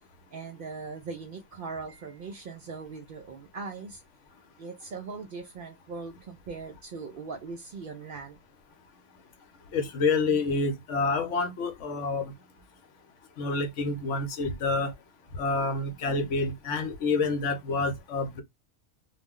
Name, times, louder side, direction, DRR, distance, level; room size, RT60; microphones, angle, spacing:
voice 1, 0.3-4.0 4.6-8.4, right 4 dB, 70° right, 0.5 m, -40 dB
voice 2, 9.7-12.3 13.4-14.9 15.4-18.4, left 3 dB, 65° left, 0.9 m, -28 dB
2.4 x 2.0 x 3.5 m
omnidirectional pair, 1.4 m